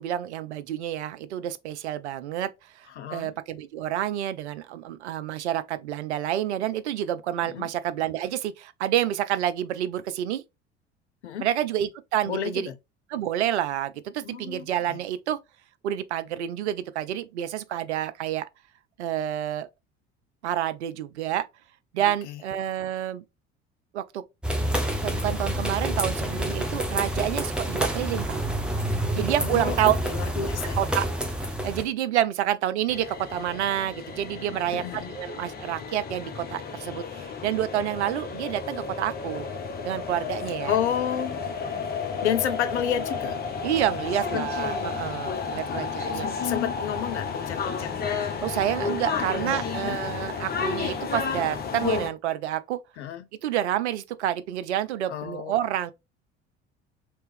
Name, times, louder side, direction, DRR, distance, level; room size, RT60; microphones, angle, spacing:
voice 1, 0.0-2.5 2.8-10.4 11.4-12.7 13.1-15.4 15.8-18.5 19.0-19.7 20.4-21.5 21.9-23.2 23.9-24.2 24.5-24.6 25.0-28.4 29.1-30.0 30.8-31.1 31.6-39.5 39.8-40.8 43.6-46.3 48.4-52.8 53.4-55.9, right 11 dB, 70° right, 0.5 m, -28 dB
voice 2, 3.0-3.3 7.4-7.7 11.2-11.5 12.3-12.7 14.2-15.0 22.0-22.4 29.4-30.9 34.7-35.2 40.7-41.4 42.2-43.4 44.3-44.4 45.6-48.4 49.4-50.1 53.0-53.2 55.1-55.6, left 9 dB, 75° left, 0.6 m, -31 dB
sound 1, 24.4-31.8, right 1 dB, 5° right, 0.8 m, -28 dB
sound 2, 32.9-52.1, left 5 dB, 25° left, 0.9 m, -32 dB
3.3 x 2.9 x 3.2 m
figure-of-eight pair, 65°, 35 cm